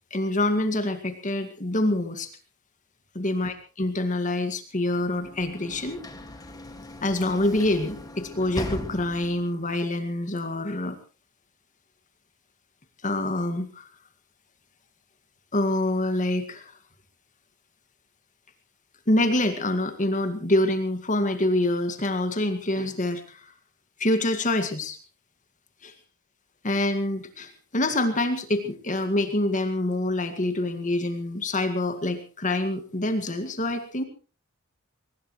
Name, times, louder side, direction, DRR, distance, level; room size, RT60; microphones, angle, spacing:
voice 1, 0.1-2.3 3.2-6.0 7.0-11.0 13.0-13.9 15.5-16.7 19.1-23.5 24.0-25.0 25.8-25.9 26.6-34.0, left 1 dB, 35° left, 7 dB, 1.9 m, -26 dB
Sliding door / Slam, 4.9-9.6, left 1 dB, 15° left, 2.0 m, -39 dB
22.5 x 19.5 x 3.2 m, 0.35 s
head